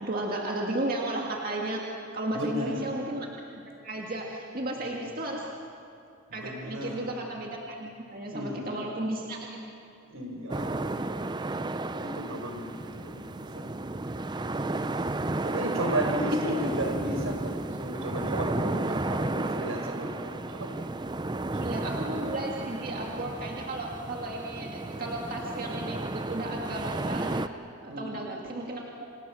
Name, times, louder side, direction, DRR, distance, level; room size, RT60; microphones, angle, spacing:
voice 1, 0.0-1.8 2.1-3.3 3.8-5.5 6.3-9.7 16.4-16.5 21.5-29.1, right 1 dB, 45° right, -1 dB, 2.1 m, -34 dB
voice 2, 2.3-3.0 4.8-5.2 6.3-7.1 8.3-9.0 10.1-13.8 14.5-20.8 21.3-21.8 27.9-28.3, equal, 80° right, 3 dB, 5.2 m, -35 dB
sound 1, 10.5-27.5, right 2 dB, 20° right, 0.5 m, -33 dB
29.0 x 26.0 x 6.3 m, 2.6 s
head